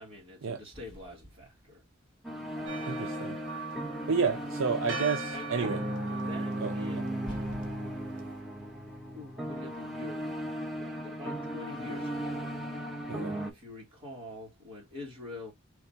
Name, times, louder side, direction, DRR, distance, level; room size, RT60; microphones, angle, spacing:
voice 1, 0.0-1.8 2.5-3.2 5.3-5.8 6.3-7.1 9.1-12.6 13.2-15.5, left 2 dB, 25° right, 2.9 m, -46 dB
sound 1, 0.7-2.0 2.7-5.2 6.6-6.7 7.1-9.3, equal, 20° left, 2.0 m, -51 dB
sound 2, 2.2-13.5, right 1 dB, ahead, 1.1 m, -36 dB
Church bell, 2.7-8.4, right 3 dB, 55° right, 1.8 m, -42 dB
voice 2, 2.9-3.4 4.1-5.8 6.6-6.7 13.0-13.4, right 5 dB, 70° right, 0.6 m, -30 dB
4.8 x 3.2 x 2.8 m
head